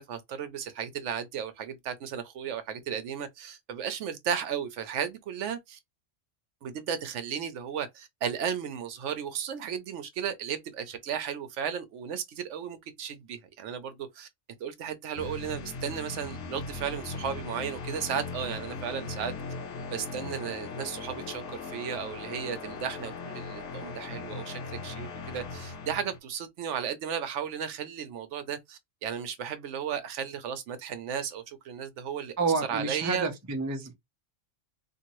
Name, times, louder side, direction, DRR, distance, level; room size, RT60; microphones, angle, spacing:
voice 1, 0.0-5.8 6.6-14.3 14.6-19.3 19.9-32.3 32.7-33.3, right 8 dB, 70° right, 0.9 m, -35 dB
sound 1, 15.2-26.2, left 4 dB, 70° left, 0.8 m, -39 dB
voice 2, 32.4-33.9, right 4 dB, 25° right, 0.3 m, -29 dB
2.7 x 2.6 x 2.9 m
omnidirectional pair, 1.3 m